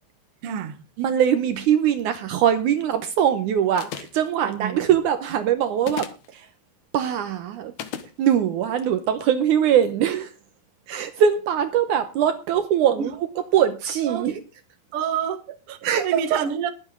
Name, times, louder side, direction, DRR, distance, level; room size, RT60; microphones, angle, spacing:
voice 1, 0.4-0.8 4.4-4.8 13.0-13.1 14.0-14.3 14.9-16.7, right 8 dB, 55° right, 1.8 m, -28 dB
voice 2, 1.0-6.5 6.9-7.7 8.2-10.3 10.9-13.1 13.5-14.4 15.8-16.5, right 9 dB, 70° right, 2.2 m, -22 dB
sound 1, 3.8-4.3 5.8-6.3 7.8-8.1, left 9 dB, 65° left, 2.3 m, -34 dB
21.0 x 8.0 x 3.8 m
omnidirectional pair, 4.0 m